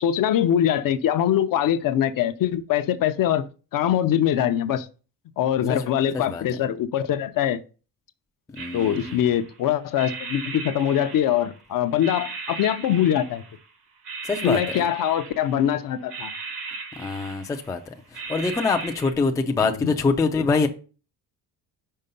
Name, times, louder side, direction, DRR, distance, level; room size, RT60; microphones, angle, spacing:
voice 1, 0.0-3.4 3.7-4.9 5.4-7.6 8.7-13.4 14.4-16.3 19.6-19.9, left 10 dB, 55° left, 0.6 m, -23 dB
voice 2, 8.5-9.2 14.2-14.9 17.0-20.7, left 4 dB, 10° left, 0.3 m, -25 dB
sound 1, 8.6-9.6 9.9-11.6 12.0-13.7 14.0-15.7 16.1-17.7 18.1-19.1, right 4 dB, 75° right, 1.7 m, -37 dB
5.5 x 4.6 x 5.2 m
cardioid pair, 170°, 40 cm